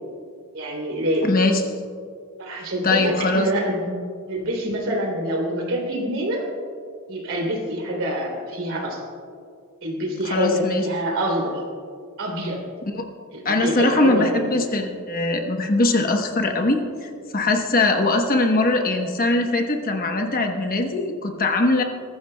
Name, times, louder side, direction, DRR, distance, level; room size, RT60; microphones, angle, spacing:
voice 1, 0.5-1.3 2.4-3.9 4.3-6.5 7.1-9.0 9.8-11.6 12.2-12.6 13.3-14.4, equal, 60° right, -1 dB, 3.1 m, -26 dB
voice 2, 1.2-1.6 2.8-3.5 10.3-10.9 12.9-13.1 13.4-21.8, left 2 dB, 40° left, 4 dB, 1.0 m, -21 dB
21.0 x 14.0 x 2.3 m, 2.2 s
head